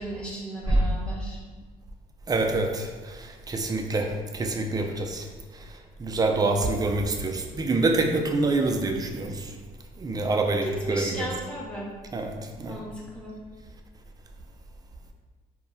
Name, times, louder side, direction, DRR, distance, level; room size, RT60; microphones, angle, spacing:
voice 1, 0.0-1.4 10.4-11.9 12.6-13.4, right 1 dB, 5° left, -5 dB, 0.7 m, -35 dB
voice 2, 2.3-4.1 4.3-5.2 6.0-9.5 10.0-11.3 12.1-12.8, right 2 dB, 20° right, 3 dB, 0.3 m, -26 dB
2.2 x 2.1 x 3.7 m, 1.4 s
cardioid pair, 90°, 17 cm